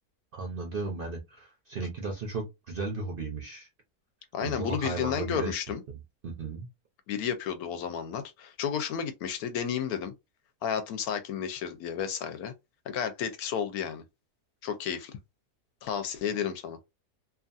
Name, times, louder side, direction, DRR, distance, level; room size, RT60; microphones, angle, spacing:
voice 1, 0.3-3.7 4.4-5.6 6.2-6.7, right 3 dB, 55° right, 0.6 m, -35 dB
voice 2, 4.3-5.8 7.1-10.1 10.6-12.5 12.9-14.0 14.6-15.2 15.8-16.8, left 8 dB, 75° left, 1.1 m, -32 dB
2.8 x 2.4 x 2.5 m
omnidirectional pair, 1.6 m